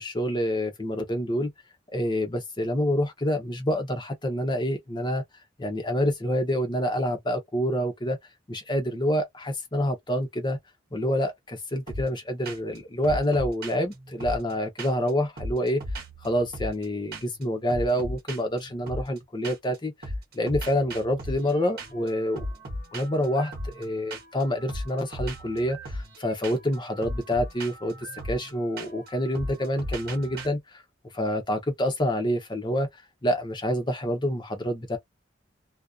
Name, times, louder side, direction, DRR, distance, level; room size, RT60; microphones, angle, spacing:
voice 1, 0.0-1.5 1.9-5.2 5.6-8.2 8.5-10.6 10.9-15.8 16.2-22.4 22.9-27.9 28.3-30.8 31.1-32.9 33.2-35.0, equal, 25° left, 0.7 m, -27 dB
sound 1, 11.9-12.2 12.4-12.8 13.0-15.1 15.4-16.8 17.1-17.4 17.7-19.8 20.0-30.5, equal, 50° right, 1.0 m, -37 dB
2.6 x 2.1 x 2.3 m
head